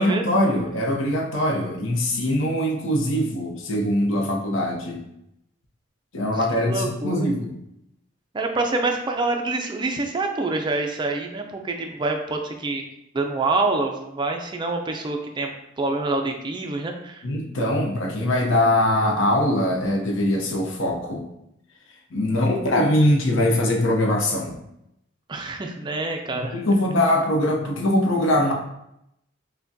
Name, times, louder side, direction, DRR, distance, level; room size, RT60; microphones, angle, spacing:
voice 1, 0.0-5.0 6.1-7.5 17.2-21.2 22.1-24.6 26.4-28.5, left 1 dB, 80° left, 1 dB, 0.7 m, -22 dB
voice 2, 6.6-7.3 8.3-12.8 13.1-15.5 15.8-17.3 25.3-26.6, right 3 dB, 25° right, 3 dB, 0.4 m, -26 dB
5.7 x 2.2 x 2.7 m, 0.82 s
head